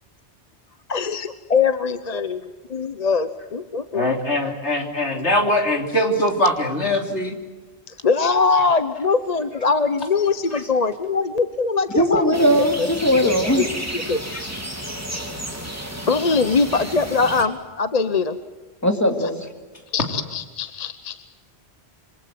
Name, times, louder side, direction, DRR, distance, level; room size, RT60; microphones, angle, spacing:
voice 1, 0.9-2.4 2.7-4.1 7.9-12.9 13.2-13.7 14.1-14.2 16.1-18.4 19.2-19.3 19.9-21.3, left 4 dB, 40° left, 11 dB, 1.0 m, -22 dB
voice 2, 3.9-7.4 10.5-10.6, left 1 dB, 85° left, 3 dB, 3.6 m, -22 dB
voice 3, 12.0-13.6 18.8-19.5, equal, 15° left, 5 dB, 2.8 m, -19 dB
sound 1, 12.3-17.4, right 1 dB, 15° right, 3.1 m, -32 dB
26.5 x 25.5 x 7.7 m, 1.3 s
omnidirectional pair, 1.1 m